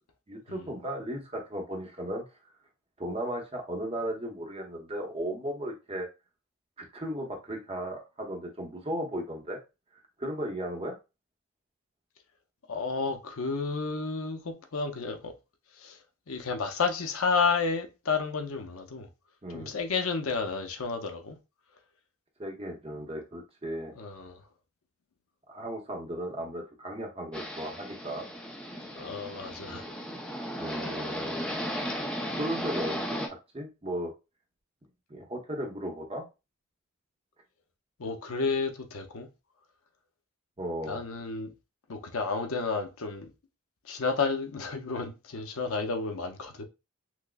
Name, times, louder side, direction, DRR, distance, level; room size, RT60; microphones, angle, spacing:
voice 1, 0.3-2.2 3.0-6.1 6.8-9.6 10.2-10.9 19.4-19.8 22.4-23.9 25.5-28.2 30.6-31.7 32.4-34.1 35.1-36.2 40.6-41.0, right 1 dB, 25° right, 0.8 m, -36 dB
voice 2, 12.7-15.3 15.8-16.0 16.3-19.1 19.5-21.4 24.0-24.4 29.0-29.9 38.0-39.3 40.9-41.5 41.9-43.3 43.8-46.6, left 4 dB, 70° left, 0.7 m, -31 dB
sound 1, 27.3-33.3, equal, 5° left, 0.4 m, -35 dB
6.0 x 2.1 x 2.2 m
head